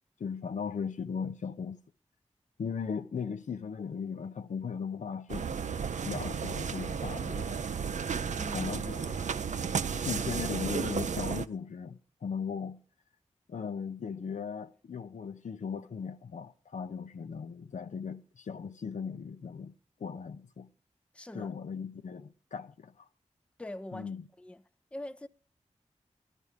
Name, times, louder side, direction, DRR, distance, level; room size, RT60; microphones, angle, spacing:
voice 1, 0.2-1.8 2.6-5.6 6.0-7.7 8.5-9.2 9.9-12.8 13.5-19.7 20.0-20.7 21.3-23.1 23.9-24.2, left 6 dB, 75° left, 0.6 m, -38 dB
sound 1, 5.3-11.5, right 6 dB, 70° right, 0.5 m, -33 dB
voice 2, 8.3-8.7 9.0-9.2 21.1-21.6 23.6-24.6 24.9-25.3, left 1 dB, 10° left, 0.5 m, -43 dB
12.5 x 11.0 x 4.9 m
cardioid pair, 40°, 13 cm